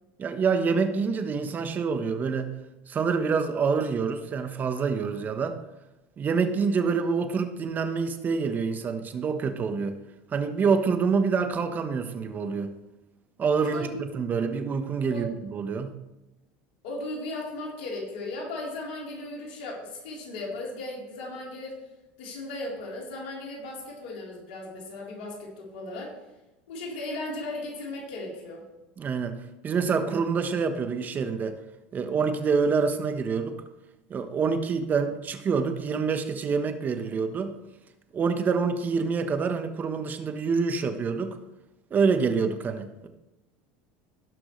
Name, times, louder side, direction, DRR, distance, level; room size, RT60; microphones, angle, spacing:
voice 1, 0.2-2.5 2.9-5.6 6.2-10.0 10.3-12.7 13.4-15.9 29.0-29.4 29.6-31.6 31.9-33.6 34.1-37.6 38.1-41.3 41.9-43.1, right 5 dB, 35° right, 8 dB, 1.2 m, -26 dB
voice 2, 13.6-14.1 15.1-15.3 16.8-21.7 22.2-26.1 26.7-28.6, left 2 dB, 80° left, -3 dB, 3.8 m, -36 dB
17.0 x 6.0 x 3.3 m, 0.97 s
supercardioid pair, 100°, 5 cm